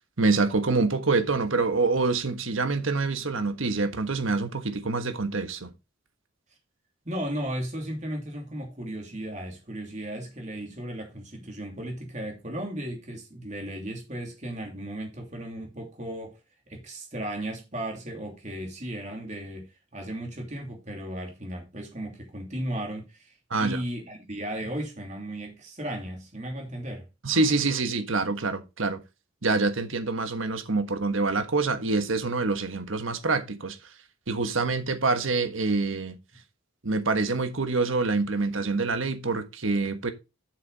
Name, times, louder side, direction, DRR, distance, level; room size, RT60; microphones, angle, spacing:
voice 1, 0.2-5.7 23.5-23.8 27.2-29.0 29.4-33.8 34.3-36.2 36.8-40.1, right 3 dB, 75° right, 1.4 m, -26 dB
voice 2, 7.0-16.4 16.7-27.1, right 1 dB, 35° right, 2.8 m, -35 dB
8.3 x 6.6 x 4.1 m
head